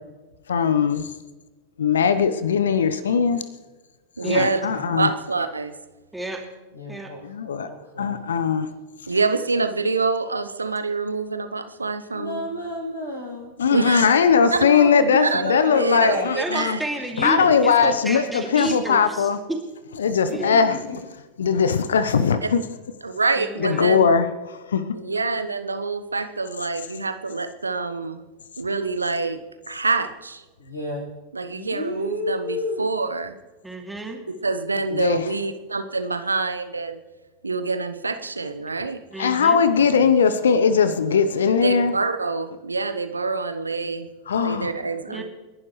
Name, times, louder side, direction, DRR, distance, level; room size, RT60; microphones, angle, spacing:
voice 1, 0.5-1.1 1.8-3.4 4.2-5.1 7.2-7.7 8.0-8.7 13.6-16.8 17.2-19.4 20.0-20.8 21.4-22.6 23.6-24.8 34.9-35.2 39.2-41.9 44.3-44.7, left 6 dB, 65° left, 13 dB, 0.9 m, -20 dB
voice 2, 4.2-4.6 5.0-5.7 9.1-12.4 13.7-14.1 14.5-14.6 15.2-16.8 23.0-24.1 24.9-28.2 28.6-29.4 29.7-30.4 31.3-33.3 34.4-37.0 37.4-39.0 41.6-44.1 44.4-45.2, right 3 dB, 80° right, 10 dB, 1.0 m, -26 dB
voice 3, 6.1-6.4 6.9-7.1 16.4-19.6 20.3-20.5 23.4-23.9 33.6-34.2 39.1-39.6 45.1-45.2, right 2 dB, 5° right, 1 dB, 2.6 m, -30 dB
voice 4, 6.7-7.2 7.7-8.3 12.1-13.5 14.4-16.3 20.5-20.6 30.6-31.0 31.5-32.9, left 1 dB, 85° left, -2 dB, 6.4 m, -30 dB
29.5 x 11.5 x 3.2 m, 1.2 s
figure-of-eight pair, 90°, 0 cm